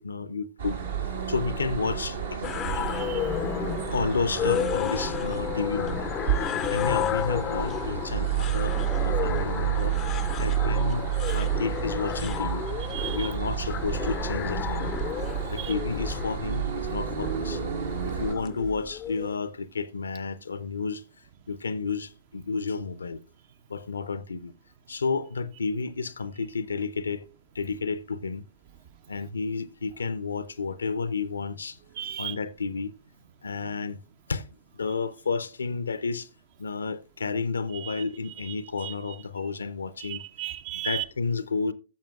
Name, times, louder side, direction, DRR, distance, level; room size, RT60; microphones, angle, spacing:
voice 1, 0.0-2.4 3.8-6.1 6.7-10.0 10.4-12.7 13.1-15.0 15.5-17.6 18.0-21.0 21.5-23.2 23.7-24.5 24.9-28.4 29.1-31.8 32.2-32.9 33.4-34.0 34.3-36.3 36.6-40.2 40.8-41.7, left 4 dB, 70° left, 0.6 m, -31 dB
sound 1, 0.6-18.3, right 9 dB, 60° right, 1.5 m, -30 dB
sound 2, 2.4-19.3, left 10 dB, 25° left, 0.5 m, -32 dB
voice 2, 2.7-3.3 6.4-6.8 12.9-13.3 15.6-15.7 32.0-32.4 37.8-38.0 38.4-38.5 38.8-38.9 40.0-41.0, right 13 dB, 45° right, 0.7 m, -36 dB
15.0 x 7.2 x 2.3 m
figure-of-eight pair, 105°, 0 cm